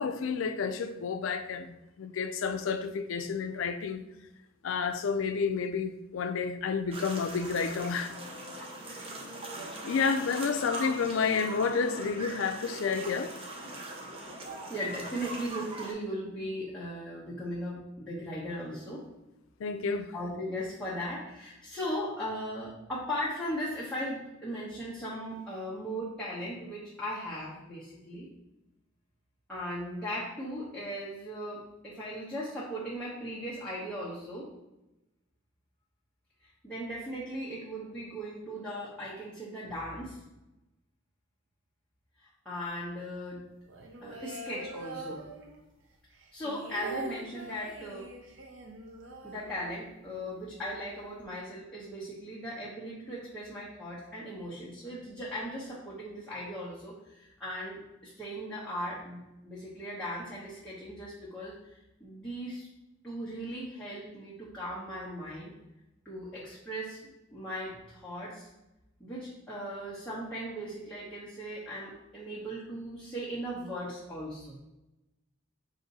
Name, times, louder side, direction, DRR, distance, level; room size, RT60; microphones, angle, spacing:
voice 1, 0.0-4.0 4.6-8.1 9.8-13.3 19.6-20.1, left 5 dB, 80° left, 0.4 m, -30 dB
sound 1, 6.9-15.9, right 2 dB, 30° right, 0.6 m, -41 dB
voice 2, 14.7-19.0 20.1-28.3 29.5-34.5 36.4-40.2 42.2-43.4 44.0-45.2 46.3-48.1 49.2-62.7 63.0-65.5 66.0-67.0 67.3-68.5 69.0-74.6, equal, 5° left, 0.9 m, -38 dB
sound 2, 43.7-45.8 46.1-50.1 50.4-50.5 50.7-51.2, right 3 dB, 70° right, 0.6 m, -43 dB
5.0 x 2.7 x 4.0 m
head